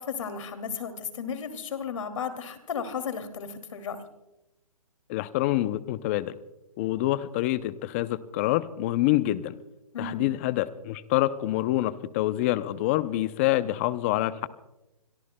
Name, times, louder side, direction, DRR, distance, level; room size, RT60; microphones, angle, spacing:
voice 1, 0.0-4.0 9.9-10.3, left 6 dB, 55° left, 8 dB, 2.4 m, -34 dB
voice 2, 5.1-6.3 6.8-9.6 10.0-14.5, left 15 dB, 20° left, 15 dB, 0.5 m, -26 dB
25.5 x 22.5 x 2.2 m, 0.97 s
hypercardioid pair, 150°, 19 cm